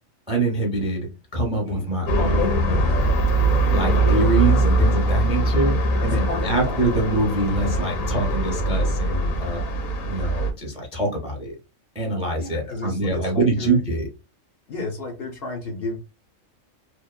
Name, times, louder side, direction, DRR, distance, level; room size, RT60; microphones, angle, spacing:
voice 1, 0.3-2.8 3.7-5.8 6.0-9.6 10.1-11.6 11.9-14.1, right 2 dB, 10° right, 0 dB, 0.4 m, -24 dB
voice 2, 1.7-2.0 5.4-5.6 6.0-6.8 12.3-13.8 14.7-16.0, left 2 dB, 60° left, 2 dB, 0.7 m, -33 dB
sound 1, 2.1-10.5, right 1 dB, 85° left, 1.1 m, -22 dB
3.0 x 2.0 x 2.2 m, 0.29 s
omnidirectional pair, 1.4 m